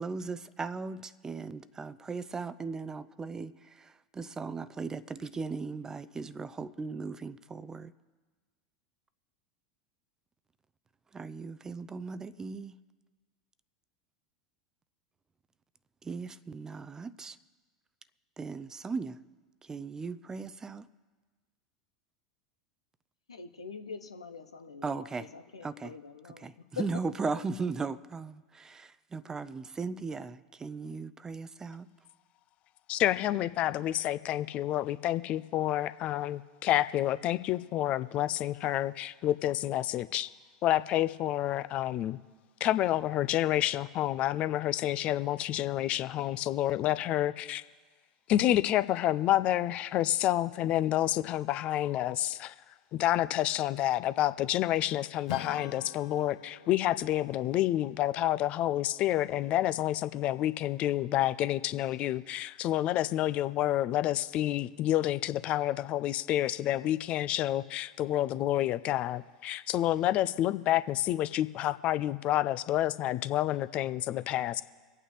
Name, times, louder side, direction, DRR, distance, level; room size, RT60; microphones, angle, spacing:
voice 1, 0.0-7.9 11.1-12.8 16.0-17.4 18.4-19.2 19.6-20.9 24.8-25.3 25.6-25.9 26.2-31.9, right 4 dB, 20° right, 0.6 m, -37 dB
voice 2, 23.3-25.1 25.3-26.5, left 4 dB, 85° left, 0.8 m, -46 dB
voice 3, 32.9-40.3 40.6-42.2 42.6-47.6 48.3-52.5 52.9-74.6, left 13 dB, 45° left, 0.5 m, -29 dB
Strum, 55.3-60.2, left 8 dB, 70° left, 1.1 m, -48 dB
25.5 x 8.8 x 3.3 m
figure-of-eight pair, 85°, 3 cm